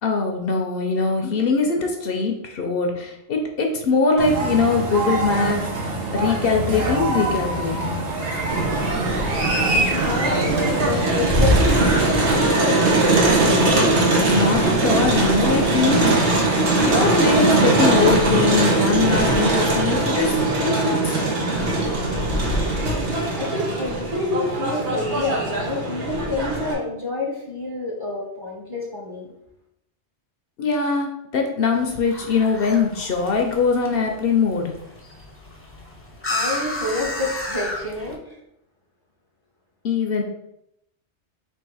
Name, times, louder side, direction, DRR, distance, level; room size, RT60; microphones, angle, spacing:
voice 1, 0.0-8.0 14.3-16.4 16.7-21.2 30.6-34.7 39.8-40.2, left 4 dB, 65° left, 2 dB, 0.7 m, -22 dB
sound 1, 4.2-12.3, right 2 dB, 60° right, 1.0 m, -25 dB
Crowd, 8.5-26.7, right 2 dB, 90° right, 1.2 m, -20 dB
voice 2, 9.7-13.1 23.4-29.3 36.3-38.4, left 2 dB, 25° right, -3 dB, 0.8 m, -28 dB
sound 2, 31.7-38.2, left 1 dB, 15° left, 0.6 m, -32 dB
3.5 x 2.8 x 4.7 m, 0.82 s
omnidirectional pair, 1.1 m